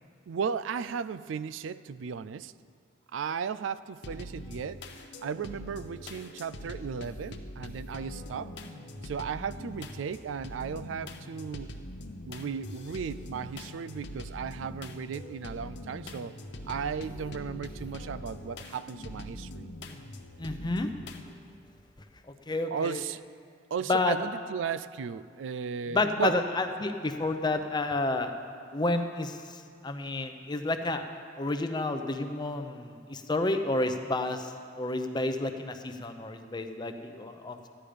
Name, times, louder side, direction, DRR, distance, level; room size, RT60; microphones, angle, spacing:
voice 1, 0.3-2.5 3.1-4.8 5.2-8.5 9.0-11.7 12.3-16.3 16.7-19.7 22.7-23.2 23.7-26.4, right 6 dB, 90° right, 16 dB, 0.4 m, -35 dB
sound 1, 4.0-21.2, left 1 dB, 65° left, 0.8 m, -43 dB
voice 2, 20.4-20.9 22.5-23.0 23.9-24.2 25.9-28.3 28.7-31.1 31.3-37.6, left 2 dB, 25° left, 7 dB, 0.7 m, -30 dB
14.0 x 10.5 x 5.1 m, 2.2 s
head